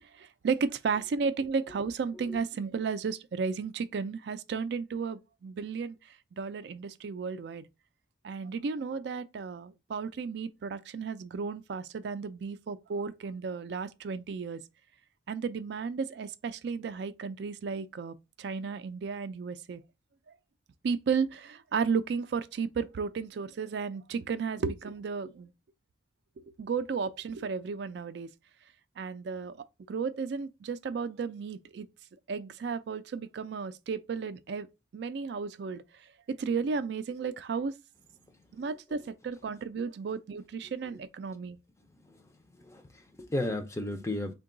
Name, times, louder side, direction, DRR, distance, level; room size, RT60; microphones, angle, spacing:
voice 1, 0.2-6.0 6.4-7.6 8.2-14.6 15.3-19.8 20.8-25.5 26.6-28.3 29.0-31.9 32.3-34.7 34.9-35.8 36.3-37.7 38.5-41.6, right 5 dB, 60° right, 0.3 m, -33 dB
voice 2, 42.6-44.3, left 1 dB, 15° left, 0.4 m, -34 dB
3.7 x 2.2 x 3.7 m
head